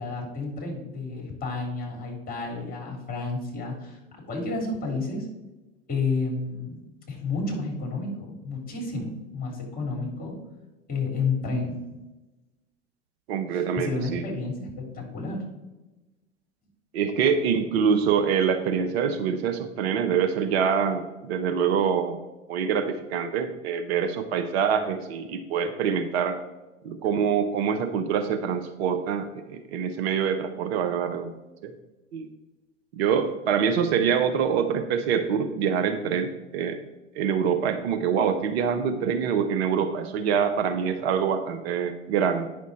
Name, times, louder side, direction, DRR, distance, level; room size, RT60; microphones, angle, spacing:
voice 1, 0.0-5.3 5.9-6.8 7.1-10.3 10.9-11.8 13.5-15.4, left 3 dB, 25° left, 1 dB, 3.3 m, -31 dB
voice 2, 13.3-14.2 16.9-22.2 22.5-26.4 26.8-31.3 31.6-31.7 32.1-32.3 32.9-36.8 37.1-42.5, right 7 dB, 55° right, 8 dB, 0.9 m, -25 dB
9.3 x 6.3 x 4.2 m, 1.1 s
figure-of-eight pair, 90°, 38 cm